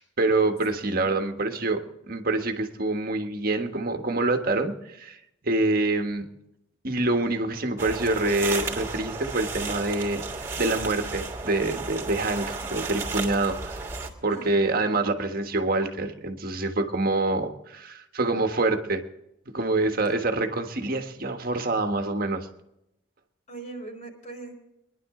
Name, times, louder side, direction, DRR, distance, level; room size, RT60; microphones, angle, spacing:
voice 1, 0.0-5.2 5.4-6.3 6.8-13.9 14.2-19.0 19.5-22.5, right 2 dB, 50° right, 5 dB, 1.5 m, -26 dB
sound 1, 7.8-14.1, right 4 dB, 15° right, 2.8 m, -33 dB
voice 2, 14.3-15.1 23.5-24.5, right 2 dB, 40° left, -1 dB, 4.0 m, -42 dB
23.5 x 11.0 x 3.8 m, 0.84 s
head